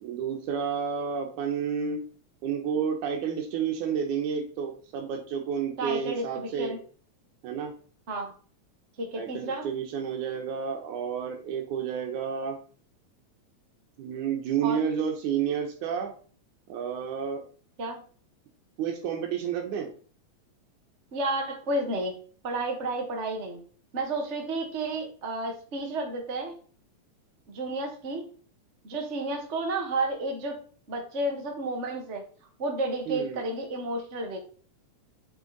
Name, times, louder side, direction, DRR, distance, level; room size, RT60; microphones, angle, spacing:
voice 1, 0.0-2.0 2.4-6.8 7.4-7.7 9.1-12.6 14.0-16.1 16.7-17.4 18.8-19.9 33.1-33.4, right 7 dB, 85° right, 3 dB, 2.4 m, -30 dB
voice 2, 5.8-6.8 8.1-8.3 9.0-9.7 14.6-14.8 17.8-18.0 21.1-22.2 22.4-23.6 23.9-26.5 27.5-28.3 28.8-30.6 30.9-32.2 32.6-34.4, right 2 dB, 45° right, 2 dB, 0.9 m, -31 dB
8.0 x 6.1 x 3.9 m, 0.43 s
omnidirectional pair, 3.4 m